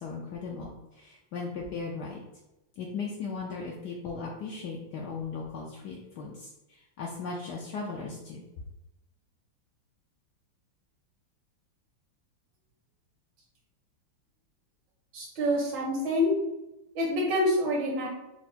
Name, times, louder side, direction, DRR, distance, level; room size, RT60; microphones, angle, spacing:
voice 1, 0.0-2.2 2.8-8.4, left 4 dB, 70° left, -2 dB, 1.0 m, -37 dB
voice 2, 15.1-16.3 16.9-18.1, left 1 dB, 70° right, -3 dB, 1.5 m, -26 dB
4.6 x 2.1 x 4.1 m, 0.95 s
omnidirectional pair, 2.2 m